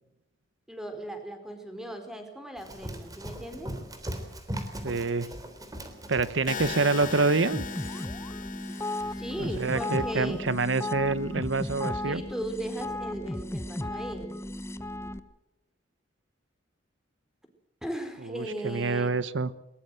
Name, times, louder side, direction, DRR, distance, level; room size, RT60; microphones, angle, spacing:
voice 1, 0.7-3.8 9.1-10.5 12.0-14.4 17.8-19.1, right 1 dB, 5° right, 6 dB, 4.1 m, -37 dB
Run, 2.6-7.3, equal, 20° right, 3.5 m, -39 dB
voice 2, 4.8-5.3 6.1-7.6 9.4-12.2 18.2-19.5, right 3 dB, 75° right, 16 dB, 1.1 m, -27 dB
sound 1, 6.5-10.5, left 6 dB, 45° left, 1.5 m, -39 dB
sound 2, 7.5-15.2, left 1 dB, 15° left, 1.0 m, -35 dB
21.5 x 20.5 x 7.8 m, 0.85 s
head